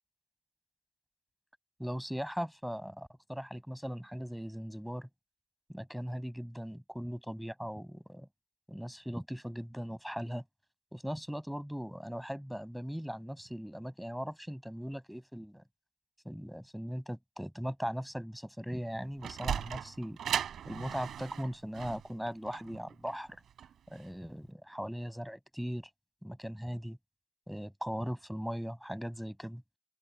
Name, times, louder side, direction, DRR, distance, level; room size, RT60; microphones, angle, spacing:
voice 1, 1.8-5.1 5.7-8.3 8.7-10.4 10.9-15.6 16.3-23.4 23.9-25.9 26.2-27.0 27.5-29.6, equal, ahead, 7.1 m, -39 dB
Sliding door, 18.9-24.1, right 9 dB, 65° right, 4.5 m, -38 dB
open air
cardioid pair, 90°, 0 cm